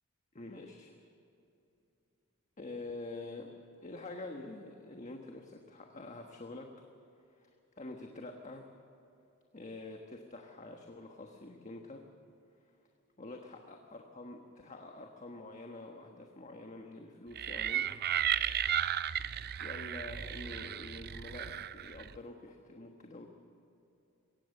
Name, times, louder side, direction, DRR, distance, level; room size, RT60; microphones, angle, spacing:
voice 1, 0.3-0.9 2.6-3.5 3.8-6.7 7.3-7.5 7.8-8.7 9.5-12.0 13.2-17.9 19.6-23.3, left 2 dB, 35° left, 3 dB, 1.3 m, -46 dB
sound 1, 17.4-22.2, right 10 dB, 45° right, 0.5 m, -34 dB
22.5 x 18.0 x 6.6 m, 2.8 s
head